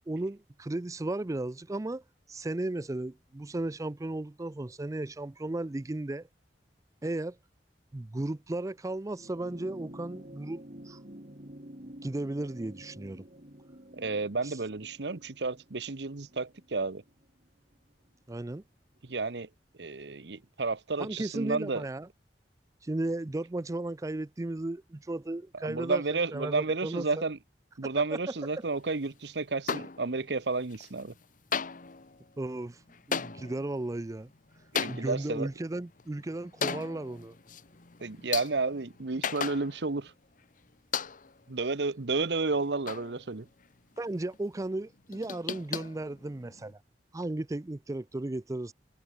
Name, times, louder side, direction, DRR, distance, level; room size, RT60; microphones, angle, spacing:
voice 1, 0.0-2.0 2.3-6.3 7.0-7.4 7.9-11.0 12.0-13.3 18.3-18.6 21.0-22.1 22.8-26.0 26.3-27.2 32.4-32.8 33.1-34.3 34.9-37.3 44.0-46.8 47.1-48.7, right 2 dB, 20° right, 0.5 m, -35 dB
sound 1, 9.1-17.8 19.0-19.1, right 1 dB, 45° right, 4.2 m, -49 dB
voice 2, 13.9-17.0 19.0-19.5 19.8-21.9 25.5-27.4 27.8-31.1 34.7-35.5 38.0-40.1 41.5-43.5, right 3 dB, 70° right, 1.0 m, -31 dB
sound 2, 29.7-30.4 30.7-31.2 31.5-40.1 40.4-40.5 40.9-41.5 42.0-43.7 44.0-44.1 44.3-44.4 44.8-46.7, left 6 dB, 50° left, 1.2 m, -37 dB
head